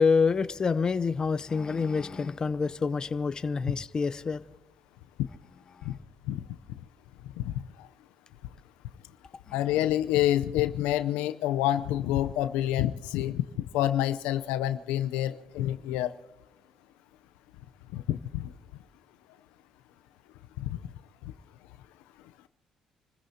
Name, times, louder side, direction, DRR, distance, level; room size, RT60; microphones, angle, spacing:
voice 1, 0.0-4.4, left 5 dB, 35° left, 0.6 m, -27 dB
voice 2, 9.5-13.4 13.7-16.1 17.9-18.5 20.6-20.8, left 13 dB, 90° left, 0.6 m, -27 dB
28.0 x 15.5 x 2.8 m
supercardioid pair, 75°, 2 cm